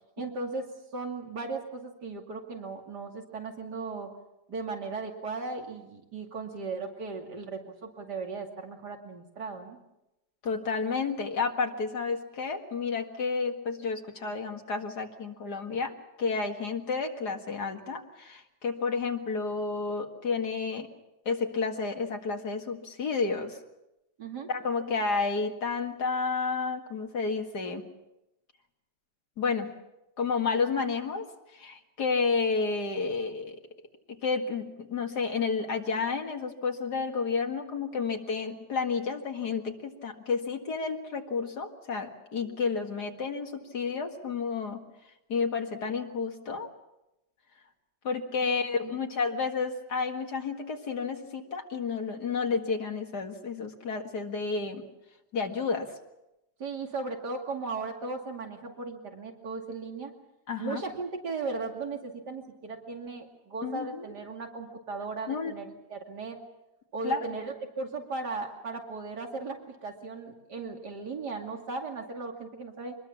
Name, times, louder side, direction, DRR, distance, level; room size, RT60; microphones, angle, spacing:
voice 1, 0.2-0.7 0.9-4.1 4.5-9.8 24.2-24.5 25.0-25.1 48.4-48.9 56.6-60.1 60.6-66.4 66.9-73.0, right 4 dB, 85° right, 3 dB, 3.2 m, -37 dB
voice 2, 10.4-15.9 16.2-20.9 21.3-23.6 24.5-27.8 29.4-29.7 30.2-31.3 31.5-33.6 34.1-44.8 45.3-46.7 48.0-54.8 55.3-55.9 60.5-60.8 63.6-64.1 65.3-65.5 67.0-67.4, left 4 dB, 75° left, 3 dB, 2.5 m, -31 dB
24.5 x 20.5 x 7.2 m, 0.93 s
omnidirectional pair, 1.7 m